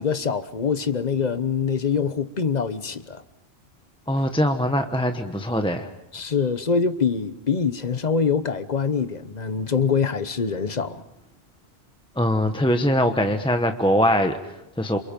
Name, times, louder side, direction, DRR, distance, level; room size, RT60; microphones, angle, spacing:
voice 1, 0.0-3.2 6.1-11.0, left 6 dB, 45° left, 1.1 m, -24 dB
voice 2, 4.1-5.9 12.2-15.0, equal, 5° left, 1.0 m, -22 dB
28.5 x 27.0 x 5.3 m
omnidirectional pair, 1.1 m